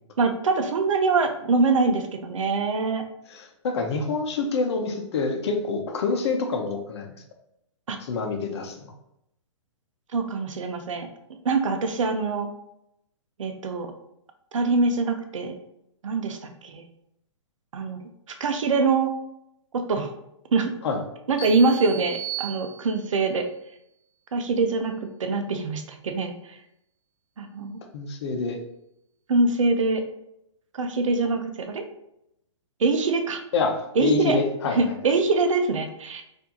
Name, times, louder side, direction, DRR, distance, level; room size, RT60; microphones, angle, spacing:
voice 1, 0.2-3.0 7.9-8.0 10.1-11.1 11.4-12.5 13.4-13.9 14.5-15.5 16.0-16.8 17.7-18.0 18.4-19.1 19.7-20.1 20.5-20.7 21.3-23.5 24.3-24.9 25.2-26.6 27.4-27.8 29.3-30.0 30.7-31.8 32.8-33.4 34.0-34.4 34.7-36.2, right 3 dB, 75° right, 6 dB, 0.7 m, -24 dB
voice 2, 3.3-7.1 8.0-8.9 20.8-21.0 27.9-28.6 33.5-34.8, left 4 dB, 55° left, 4 dB, 0.8 m, -26 dB
sound 1, 21.4-23.2, right 10 dB, 25° left, 1.2 m, -36 dB
4.4 x 2.7 x 2.7 m, 0.80 s
hypercardioid pair, 140°, 17 cm